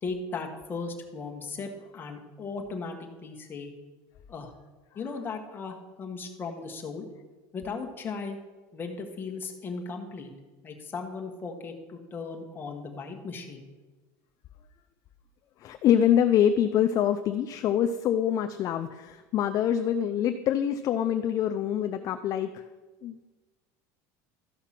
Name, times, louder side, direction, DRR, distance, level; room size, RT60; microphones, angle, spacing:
voice 1, 0.0-3.7 4.3-4.5 4.9-7.1 7.5-8.4 8.7-10.3 10.6-13.6, left 4 dB, 20° left, 1 dB, 1.5 m, -37 dB
voice 2, 15.6-22.6 23.0-23.2, left 9 dB, 40° left, 8 dB, 0.5 m, -25 dB
13.5 x 5.8 x 5.9 m, 1.3 s
cardioid pair, 140°, 9 cm